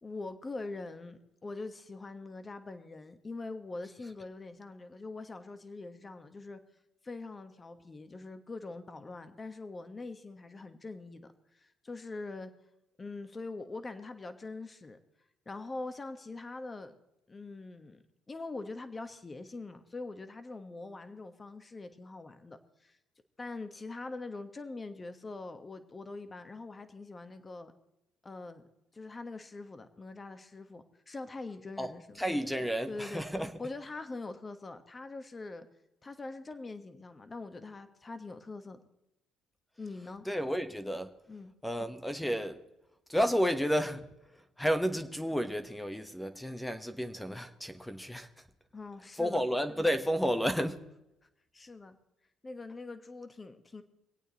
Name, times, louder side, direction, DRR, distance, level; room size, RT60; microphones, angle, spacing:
voice 1, 0.0-6.6 7.0-12.5 13.0-15.0 15.4-17.0 17.3-23.0 23.4-27.7 28.2-28.6 28.9-32.2 32.9-33.2 33.6-35.7 36.0-38.8 39.8-40.2 41.3-41.5 48.7-49.4 50.4-50.5 51.5-52.0 52.4-53.8, left 3 dB, 25° left, 1.3 m, -43 dB
voice 2, 32.2-33.5 40.3-41.1 41.6-42.6 43.1-44.1 44.6-48.3 49.2-50.8, equal, 5° left, 1.1 m, -31 dB
24.0 x 8.6 x 4.1 m
supercardioid pair, 80°, 0 cm